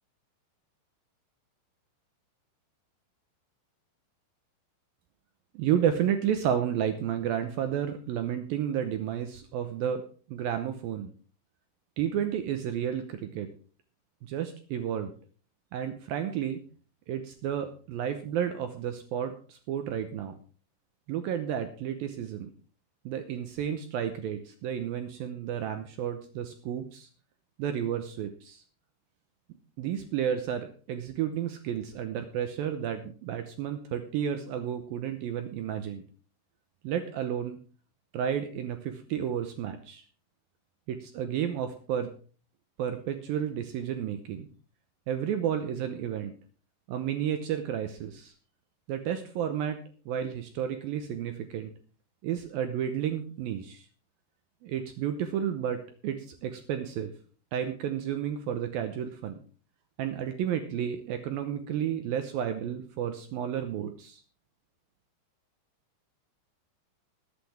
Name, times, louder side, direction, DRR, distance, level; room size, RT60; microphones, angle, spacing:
voice 1, 5.5-10.0 10.3-11.1 12.0-13.5 14.2-15.1 15.7-16.6 17.1-20.3 21.1-22.5 23.1-27.1 27.6-28.6 29.8-36.0 36.8-37.6 38.1-40.0 40.9-42.1 42.8-44.5 45.1-46.3 46.9-48.3 48.9-51.7 52.2-53.8 54.6-57.1 57.5-59.4 60.0-64.2, right 9 dB, 80° right, 7 dB, 2.1 m, -32 dB
21.0 x 8.4 x 3.5 m, 0.40 s
omnidirectional pair, 5.4 m